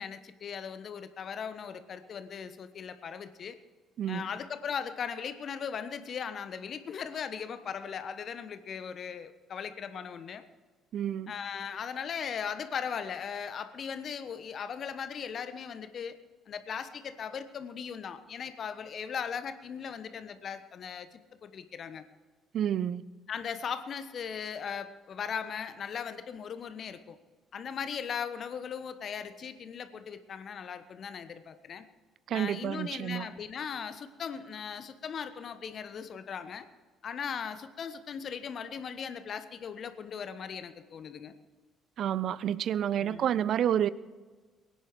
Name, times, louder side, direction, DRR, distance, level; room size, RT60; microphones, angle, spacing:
voice 1, 0.0-3.6 4.1-10.4 11.3-16.1 16.5-22.0 23.3-27.2 27.5-31.8 32.3-36.7 37.0-41.3 43.0-43.3, left 7 dB, 50° left, 1.2 m, -38 dB
voice 2, 4.0-4.3 10.9-11.3 22.5-23.0 32.3-33.3 42.0-43.9, right 10 dB, 55° right, 0.5 m, -29 dB
22.5 x 10.0 x 4.7 m
figure-of-eight pair, 50°, 0 cm